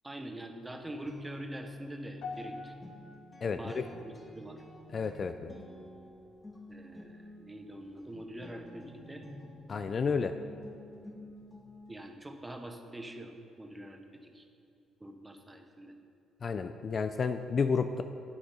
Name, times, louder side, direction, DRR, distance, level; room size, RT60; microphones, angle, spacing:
voice 1, 0.0-2.7 3.6-4.6 6.7-9.3 11.9-14.5 15.0-15.9, right 1 dB, 10° right, 5 dB, 0.8 m, -44 dB
Guitar, 1.0-12.0, left 1 dB, 15° left, 1.4 m, -50 dB
sound 1, 2.2-6.6 6.9-7.3 7.9-8.0, left 4 dB, 60° left, 1.0 m, -49 dB
voice 2, 3.4-3.8 4.9-5.5 9.7-10.3 16.4-18.0, left 5 dB, 35° left, 9 dB, 0.3 m, -31 dB
10.0 x 8.7 x 5.5 m, 2.6 s
cardioid pair, 150°, 0 cm